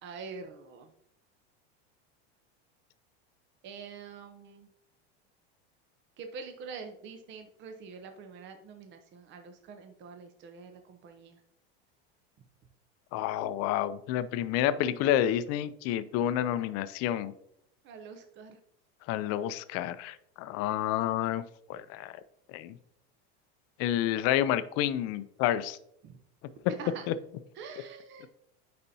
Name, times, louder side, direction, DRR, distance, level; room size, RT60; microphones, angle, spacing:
voice 1, 0.0-0.9 3.6-4.7 6.2-11.4 17.8-18.6 26.0-26.2 26.8-27.1 27.6-28.3, right 5 dB, 35° right, 6 dB, 0.7 m, -45 dB
voice 2, 13.1-17.3 19.1-21.4 21.7-22.1 22.5-22.7 23.8-25.8 27.1-27.2, left 11 dB, 50° left, 14 dB, 0.5 m, -29 dB
9.7 x 4.3 x 2.7 m, 0.74 s
supercardioid pair, 125°, 32 cm